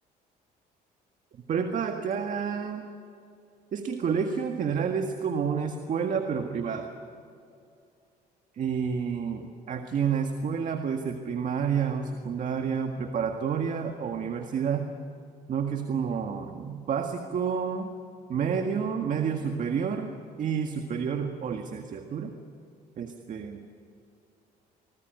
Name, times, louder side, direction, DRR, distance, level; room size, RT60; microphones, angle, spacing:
voice 1, 1.5-2.9 3.7-6.9 8.6-14.8 15.5-17.9 18.3-20.1 20.4-22.3 23.0-23.6, right 6 dB, 50° right, 5 dB, 1.8 m, -29 dB
26.5 x 19.5 x 9.3 m, 2.4 s
cardioid pair, 110°, 17 cm